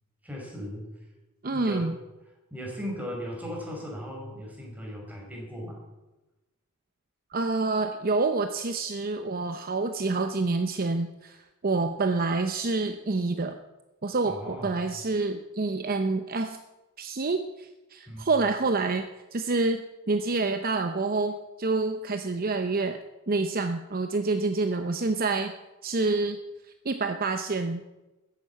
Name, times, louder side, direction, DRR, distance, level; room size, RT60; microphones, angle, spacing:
voice 1, 0.2-0.9 1.5-1.9 2.5-5.8 14.2-14.8 18.1-18.3, equal, 5° right, -2 dB, 5.2 m, -37 dB
voice 2, 1.4-1.9 7.3-13.6 14.0-16.6 17.0-23.0 23.3-25.5 25.8-26.4 26.8-27.8, right 3 dB, 45° right, 7 dB, 0.8 m, -27 dB
14.0 x 10.0 x 8.4 m, 1.1 s
head